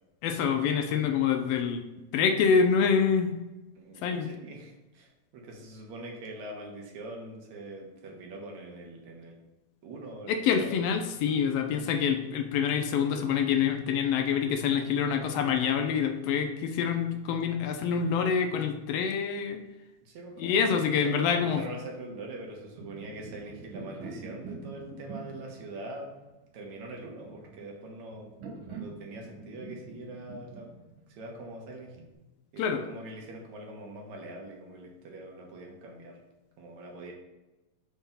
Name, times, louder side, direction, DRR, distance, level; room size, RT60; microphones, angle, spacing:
voice 1, 0.2-1.8 2.1-3.4 4.0-4.3 10.3-19.6 20.4-21.6 32.6-32.8, left 6 dB, 85° left, 4 dB, 1.4 m, -26 dB
voice 2, 3.8-9.4 9.8-11.0 20.1-20.7 21.0-26.1 26.5-28.3 28.7-30.7 31.1-32.0 32.5-36.2 36.6-37.1, right 2 dB, 75° right, 0 dB, 2.3 m, -43 dB
sound 1, 22.4-32.1, right 4 dB, 55° right, 1.7 m, -45 dB
5.4 x 3.5 x 5.7 m, 1.1 s
omnidirectional pair, 3.4 m